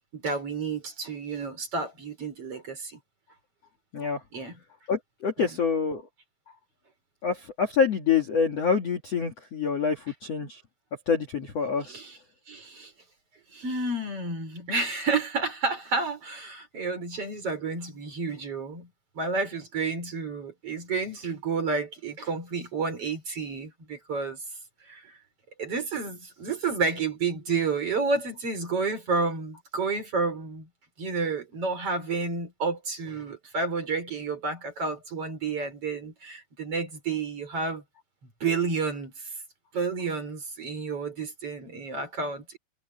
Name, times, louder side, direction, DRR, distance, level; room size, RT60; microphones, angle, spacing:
voice 1, 0.1-3.0 4.3-4.6 5.4-5.5 11.9-12.2 12.5-12.9 13.5-18.9 19.2-24.4 24.9-25.1 25.6-30.7 31.0-37.8 38.4-39.3 39.7-42.6, right 4 dB, 35° right, 5.1 m, -30 dB
voice 2, 4.9-6.0 7.2-10.6 11.1-12.0, left 6 dB, 50° left, 2.2 m, -26 dB
omnidirectional pair, 5.2 m